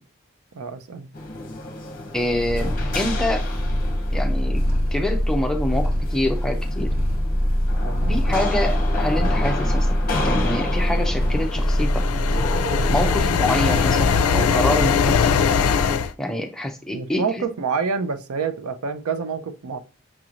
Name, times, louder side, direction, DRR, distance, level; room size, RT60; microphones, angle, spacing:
voice 1, 0.5-1.1 7.8-8.2 16.9-19.8, right 5 dB, 85° right, 0.5 m, -27 dB
sound 1, 1.1-14.2, left 2 dB, 40° left, 0.7 m, -32 dB
voice 2, 2.1-3.5 4.1-4.6 4.9-6.9 8.1-9.9 10.2-12.1 12.9-15.3 16.2-17.3, left 1 dB, 5° left, 0.5 m, -26 dB
Purr, 2.3-13.5, equal, 45° right, 1.1 m, -23 dB
sound 2, 11.4-16.1, left 6 dB, 90° left, 0.4 m, -21 dB
5.9 x 3.0 x 2.5 m
head